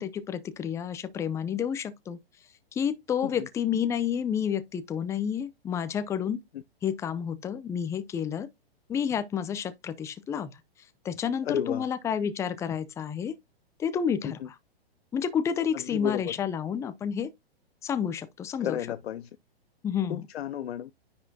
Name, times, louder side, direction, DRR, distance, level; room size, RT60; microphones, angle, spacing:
voice 1, 0.0-2.2 2.7-6.4 6.8-8.5 8.9-10.5 11.0-13.3 13.8-14.5 15.1-17.3 17.8-18.8 19.8-20.2, left 8 dB, 10° left, 0.5 m, -30 dB
voice 2, 11.4-11.9 14.2-14.5 15.7-16.4 18.6-19.3 20.1-20.9, left 10 dB, 80° left, 0.5 m, -32 dB
9.9 x 4.3 x 2.7 m
hypercardioid pair, 130°, 31 cm